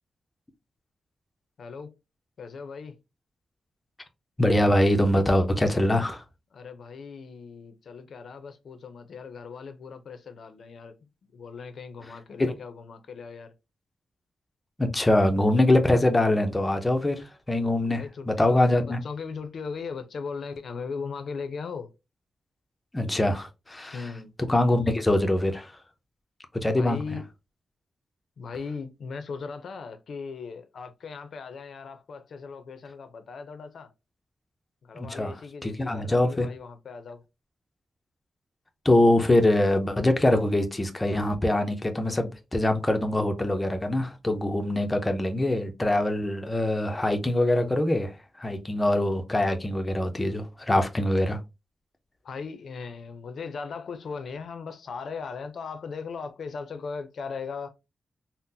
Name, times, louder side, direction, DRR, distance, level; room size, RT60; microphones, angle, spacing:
voice 1, 1.6-1.9 2.4-3.0 6.5-11.0 11.3-13.5 18.0-21.9 23.9-24.3 26.8-27.2 28.4-33.9 34.8-37.2 52.2-57.7, left 5 dB, 65° left, 0.5 m, -38 dB
voice 2, 4.4-6.2 12.0-12.1 12.4-12.5 14.8-19.0 22.9-24.1 24.4-25.7 26.5-27.2 35.0-36.5 38.8-51.4, left 1 dB, 15° left, 0.5 m, -24 dB
3.7 x 2.0 x 2.6 m
wide cardioid pair, 120°, 0 cm